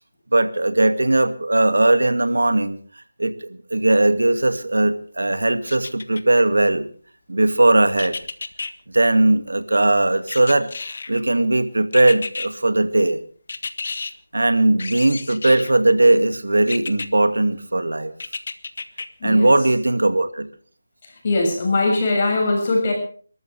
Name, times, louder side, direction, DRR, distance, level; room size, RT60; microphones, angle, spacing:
voice 1, 0.3-2.8 3.2-6.9 7.3-8.2 8.9-10.7 11.1-13.2 14.3-18.1 19.2-20.5, right 2 dB, 90° right, 10 dB, 2.3 m, -18 dB
sound 1, 5.7-6.5 8.0-8.7 10.3-11.2 11.9-12.5 13.5-14.1 14.8-15.8 16.7-17.1 18.2-19.1 19.5-19.6, left 4 dB, 50° left, 1.5 m, -31 dB
voice 2, 19.2-19.5 21.0-22.9, left 2 dB, 35° left, 1 dB, 6.9 m, -21 dB
29.5 x 13.5 x 3.5 m, 0.43 s
figure-of-eight pair, 165°, 0 cm